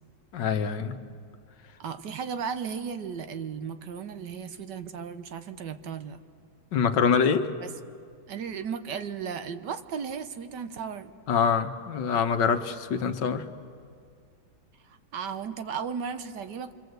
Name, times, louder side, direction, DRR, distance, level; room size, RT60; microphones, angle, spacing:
voice 1, 0.3-1.0 6.7-7.5 11.3-13.4, left 6 dB, 70° left, 8 dB, 1.7 m, -25 dB
voice 2, 1.8-6.2 7.6-7.7 8.3-11.1 14.8-16.7, right 6 dB, 65° right, 10 dB, 1.5 m, -35 dB
26.0 x 25.0 x 8.0 m, 2.2 s
omnidirectional pair, 2.0 m